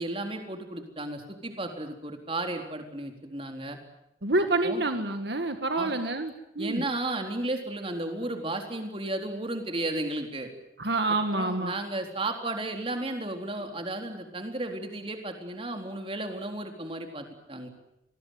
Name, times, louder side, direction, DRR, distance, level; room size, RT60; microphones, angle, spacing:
voice 1, 0.0-3.8 4.6-4.8 5.7-5.9 6.6-10.5 11.3-17.7, right 2 dB, 30° right, 4 dB, 3.9 m, -34 dB
voice 2, 4.2-6.8 10.8-11.7, right 2 dB, 70° right, 7 dB, 1.9 m, -27 dB
27.0 x 20.5 x 9.5 m, 0.83 s
head